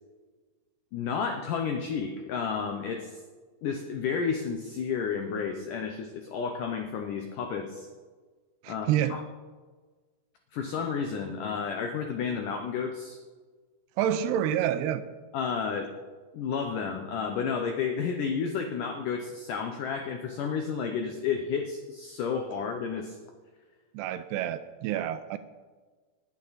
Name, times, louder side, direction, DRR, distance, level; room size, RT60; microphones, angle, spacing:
voice 1, 0.9-3.2 3.6-7.9 8.7-9.2 10.5-13.2 15.3-15.9 16.3-23.2, left 6 dB, 80° left, 5 dB, 1.8 m, -31 dB
voice 2, 8.6-9.2 14.0-15.0 23.9-25.4, right 10 dB, 80° right, 11 dB, 2.5 m, -28 dB
19.5 x 10.5 x 4.1 m, 1.4 s
omnidirectional pair, 4.9 m